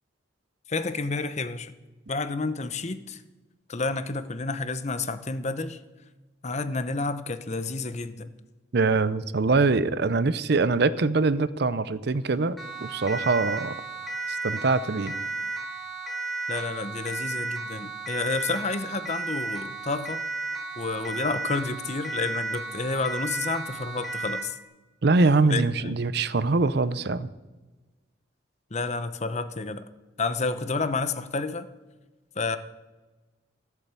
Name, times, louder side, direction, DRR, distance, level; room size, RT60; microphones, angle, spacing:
voice 1, 0.7-1.7 2.1-3.2 3.7-5.8 6.4-8.3 16.5-20.2 20.8-24.6 25.4-25.9 28.7-29.8 30.2-31.7 32.4-32.6, left 3 dB, 35° left, 12 dB, 0.8 m, -30 dB
voice 2, 8.7-13.8 14.3-15.1 25.0-27.3, right 3 dB, 55° right, 15 dB, 0.6 m, -23 dB
Siren, 12.6-24.6, right 3 dB, ahead, 1.9 m, -34 dB
14.5 x 8.4 x 8.2 m, 1.2 s
head